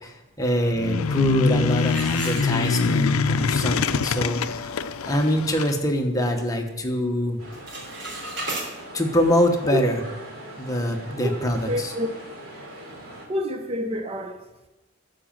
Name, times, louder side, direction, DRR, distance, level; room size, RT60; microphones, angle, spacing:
voice 1, 0.0-7.4 8.9-10.0 10.6-11.9, equal, 15° left, 2 dB, 1.2 m, -24 dB
sound 1, 0.8-5.7, left 5 dB, 85° left, 0.5 m, -24 dB
sound 2, 1.8-3.1 3.5-3.6 4.2-4.3 4.7-5.0 5.4-6.5 6.8-7.2 7.4-8.7, right 2 dB, 60° right, 3.0 m, -35 dB
sound 3, 7.4-13.3, right 1 dB, 85° right, 2.9 m, -41 dB
voice 2, 11.2-12.1 13.3-14.4, left 1 dB, 30° right, 6 dB, 0.6 m, -28 dB
12.5 x 5.1 x 7.4 m, 1.1 s
head